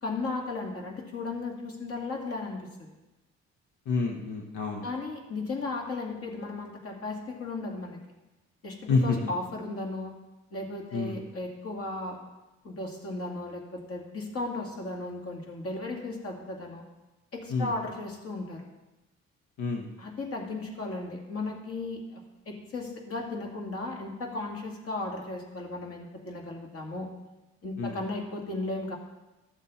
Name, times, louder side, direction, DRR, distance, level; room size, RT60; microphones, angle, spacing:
voice 1, 0.0-2.9 4.8-8.0 8.6-10.1 10.5-12.2 12.6-16.8 17.3-18.7 20.0-27.1 27.6-29.0, left 2 dB, 50° left, 1 dB, 2.4 m, -35 dB
voice 2, 3.9-4.9 8.9-9.2 10.9-11.2 17.5-17.7 19.6-19.9 27.8-28.0, left 4 dB, 85° left, 1 dB, 1.2 m, -28 dB
13.5 x 7.3 x 4.2 m, 1.0 s
cardioid pair, 90°, 30 cm